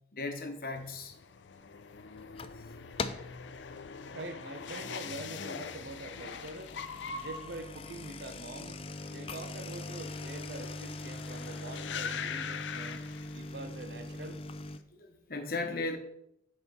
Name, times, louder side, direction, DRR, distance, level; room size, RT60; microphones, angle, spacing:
voice 1, 0.1-1.1 13.4-13.5 14.9-16.0, left 3 dB, 50° left, 0.9 m, -36 dB
sound 1, 0.8-13.8 14.1-14.7, left 6 dB, 85° left, 0.5 m, -43 dB
sound 2, 2.2-2.6 3.0-3.4 3.9-4.2 4.7-4.8 5.1-5.2 6.2-14.8, left 3 dB, 30° left, 0.4 m, -41 dB
voice 2, 4.1-6.7 7.1-8.8 9.1-13.0 13.3-14.4, right 2 dB, 65° right, 0.7 m, -44 dB
8.1 x 4.2 x 5.4 m
head